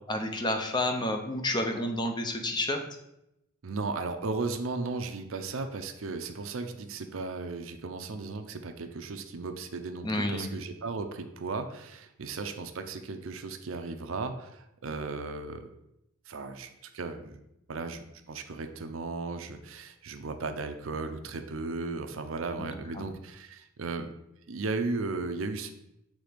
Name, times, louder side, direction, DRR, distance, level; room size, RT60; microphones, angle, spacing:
voice 1, 0.1-2.8 10.0-10.5 22.6-23.1, left 1 dB, 20° left, 5 dB, 0.7 m, -30 dB
voice 2, 3.6-15.6 16.3-17.4 17.7-24.1 24.5-25.7, right 3 dB, 75° right, 7 dB, 0.6 m, -36 dB
6.6 x 3.4 x 5.0 m, 0.85 s
head